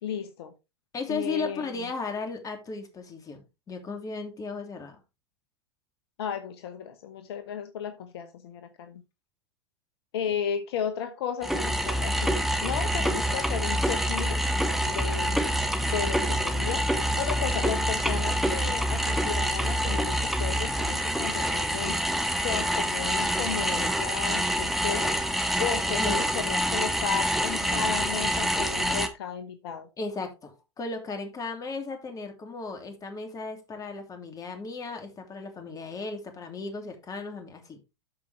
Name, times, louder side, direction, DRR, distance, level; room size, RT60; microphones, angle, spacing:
voice 1, 0.0-0.5 1.1-1.9 6.2-9.0 10.1-14.5 14.9-15.5 15.9-22.0 22.4-25.2 25.6-29.9, left 8 dB, 65° left, 1.1 m, -34 dB
voice 2, 0.9-5.0 15.7-16.1 18.1-18.2 25.9-26.3 30.0-37.8, left 3 dB, 25° left, 2.9 m, -36 dB
sound 1, 11.4-29.1, equal, ahead, 1.4 m, -26 dB
13.0 x 5.3 x 3.3 m
hypercardioid pair, 95°, 14 cm